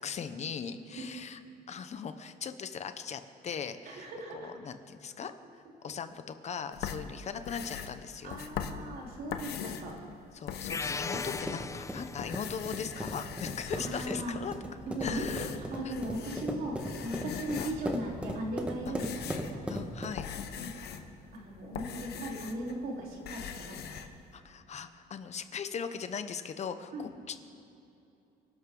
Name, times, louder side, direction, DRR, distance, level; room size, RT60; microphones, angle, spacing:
voice 1, 0.0-1.4 1.7-4.1 4.3-5.3 5.8-8.4 10.3-14.5 15.0-15.5 15.8-15.9 17.2-17.4 18.9-19.0 19.7-20.3 24.3-27.4, left 6 dB, 40° left, 10 dB, 0.9 m, -39 dB
voice 2, 3.9-4.5 8.2-10.0 13.7-14.4 14.9-19.1 19.3-19.7 20.6-21.0 21.3-24.1 26.9-27.1, right 1 dB, 60° right, -2 dB, 3.9 m, -38 dB
sound 1, 6.7-10.0 10.3-11.8 12.2-14.3 14.9-16.5 16.8-18.0 18.6-22.8 23.0-24.1, left 8 dB, 70° left, 1.1 m, -41 dB
sound 2, 10.7-12.6, left 4 dB, 20° left, 0.5 m, -38 dB
sound 3, 11.0-20.4, equal, 5° right, 1.5 m, -39 dB
25.0 x 12.0 x 3.9 m, 2.8 s
cardioid pair, 110°, 17 cm